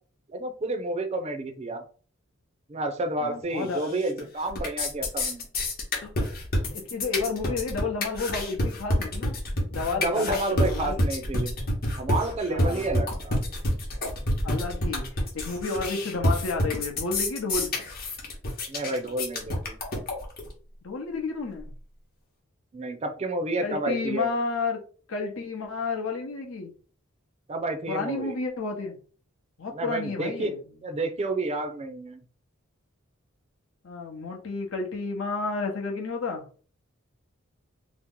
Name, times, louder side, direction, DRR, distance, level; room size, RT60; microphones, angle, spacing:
voice 1, 0.3-1.8 2.7-5.5 9.9-11.5 12.0-13.4 18.7-19.7 22.7-24.3 27.5-28.3 29.7-30.5 30.8-32.2, right 2 dB, 30° right, 7 dB, 0.4 m, -30 dB
voice 2, 3.2-4.0 6.7-9.4 9.7-11.0 12.5-12.9 14.4-17.7 20.8-21.7 23.6-24.8 25.1-26.7 27.9-29.0 29.6-30.6 33.8-36.4, left 4 dB, 75° left, 2 dB, 0.8 m, -31 dB
sound 1, 3.8-4.2 4.5-20.5, left 1 dB, 45° left, 0.9 m, -28 dB
2.9 x 2.0 x 3.6 m, 0.41 s
head